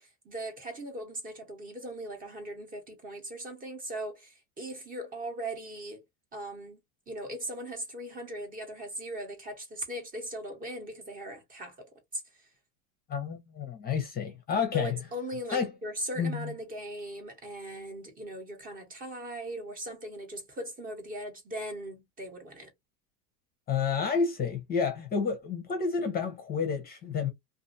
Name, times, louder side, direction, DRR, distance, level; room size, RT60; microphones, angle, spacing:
voice 1, 0.0-6.0 6.3-6.8 7.1-11.8 12.1-12.5 14.7-22.7, right 1 dB, 20° right, 1.0 m, -39 dB
voice 2, 13.1-15.0 15.5-15.7 16.2-16.5 23.7-27.3, left 6 dB, 20° left, 0.7 m, -30 dB
2.6 x 2.5 x 2.5 m
supercardioid pair, 135°, 42 cm